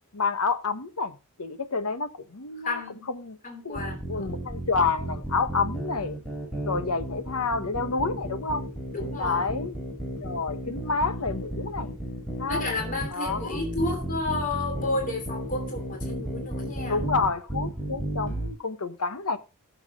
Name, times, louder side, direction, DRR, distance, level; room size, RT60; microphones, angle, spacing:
voice 1, 0.1-2.8 3.1-3.4 3.6-3.8 4.1-6.2 6.7-8.6 9.2-9.7 10.2-11.9 12.4-12.7 13.1-13.6 16.9-19.4, left 4 dB, 85° left, 1.1 m, -29 dB
voice 2, 2.6-3.1 3.4-4.3 8.9-9.6 12.5-17.0, left 2 dB, 40° left, 3.0 m, -32 dB
sound 1, 3.7-18.5, right 1 dB, 5° left, 6.7 m, -33 dB
16.5 x 7.3 x 3.5 m
head